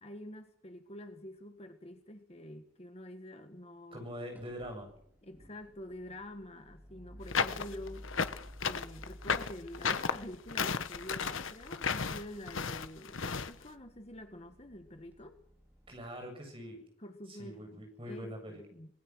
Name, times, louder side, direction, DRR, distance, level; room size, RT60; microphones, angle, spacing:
voice 1, 0.0-4.1 5.2-8.2 8.6-15.4 17.0-18.9, left 1 dB, 30° left, 7 dB, 1.6 m, -47 dB
voice 2, 3.9-4.9 15.9-16.8 17.3-18.6, equal, 25° right, 3 dB, 7.9 m, -43 dB
sound 1, 4.3-16.1, equal, 10° right, 3.1 m, -54 dB
sound 2, 7.3-13.5, left 6 dB, 75° left, 1.2 m, -33 dB
26.5 x 19.5 x 6.3 m, 0.66 s
head